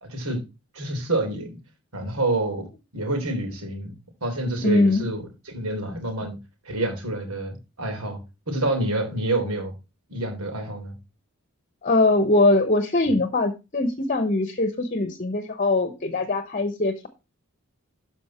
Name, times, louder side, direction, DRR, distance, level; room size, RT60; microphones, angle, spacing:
voice 1, 0.0-0.4 0.7-1.6 1.9-2.7 2.9-3.9 4.2-6.4 6.7-8.2 8.5-9.7 10.1-11.0, right 2 dB, 80° right, 3 dB, 3.7 m, -27 dB
voice 2, 4.6-5.0 11.8-17.1, left 2 dB, 35° left, 10 dB, 0.9 m, -22 dB
12.5 x 5.3 x 4.3 m, 0.27 s
head